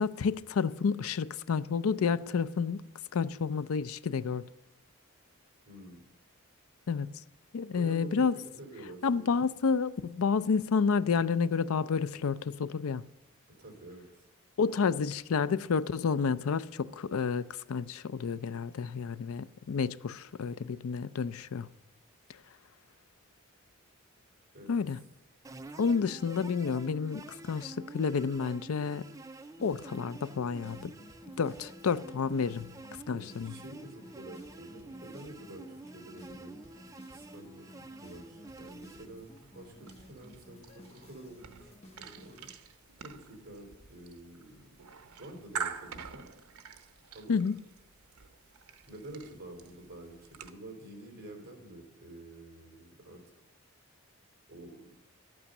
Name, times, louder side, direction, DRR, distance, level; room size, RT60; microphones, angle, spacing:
voice 1, 0.0-2.8 3.1-4.4 6.9-7.1 7.5-8.4 9.0-13.0 14.6-21.7 24.7-25.0 25.8-29.0 29.6-30.9 31.4-32.7 33.1-33.5 47.3-47.6, left 5 dB, 80° left, 0.4 m, -30 dB
voice 2, 5.7-6.0 7.7-9.3 13.5-14.2 24.5-24.8 33.1-36.6 37.1-44.8 45.2-46.3 47.1-47.4 48.9-53.2 54.5-54.9, right 1 dB, 45° right, 3.5 m, -48 dB
sound 1, 25.4-39.1, right 2 dB, 15° right, 0.4 m, -49 dB
sound 2, 29.6-42.5, left 1 dB, 30° left, 1.2 m, -55 dB
sound 3, 38.5-50.5, right 6 dB, 85° right, 0.8 m, -46 dB
12.0 x 8.6 x 6.5 m
head